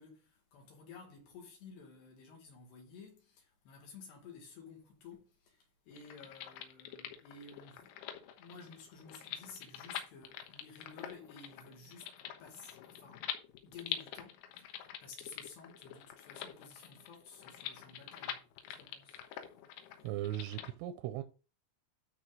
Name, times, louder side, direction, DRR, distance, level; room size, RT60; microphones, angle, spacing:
voice 1, 0.0-7.9 8.3-12.1 12.4-13.3 13.6-19.2, left 5 dB, 60° left, 3.4 m, -53 dB
sound 1, 5.9-20.7, left 10 dB, 85° left, 3.9 m, -46 dB
voice 2, 20.0-21.2, right 13 dB, 85° right, 3.2 m, -38 dB
13.0 x 4.6 x 3.8 m
omnidirectional pair, 6.0 m